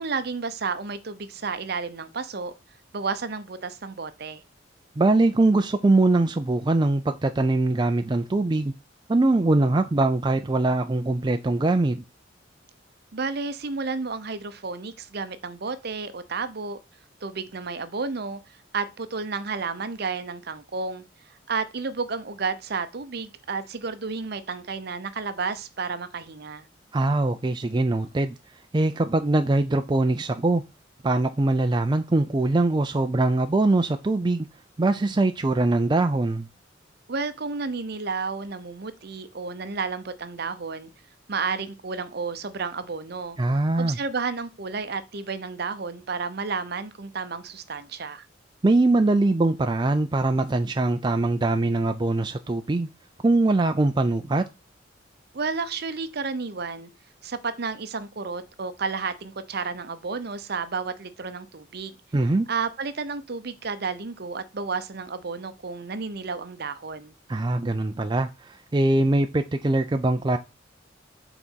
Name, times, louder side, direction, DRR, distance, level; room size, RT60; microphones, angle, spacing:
voice 1, 0.0-2.5 2.9-4.4 13.1-16.8 17.2-21.0 21.5-26.7 37.1-40.9 41.3-43.4 43.8-48.3 55.3-56.9 57.2-61.9 62.5-67.1, right 4 dB, 55° right, 0.7 m, -31 dB
voice 2, 5.0-8.7 9.1-12.0 26.9-28.3 28.7-30.6 31.0-34.5 34.8-36.5 43.4-44.0 48.6-52.9 53.2-54.4 62.1-62.5 67.3-70.4, right 2 dB, 25° right, 0.4 m, -22 dB
5.9 x 4.0 x 6.2 m
head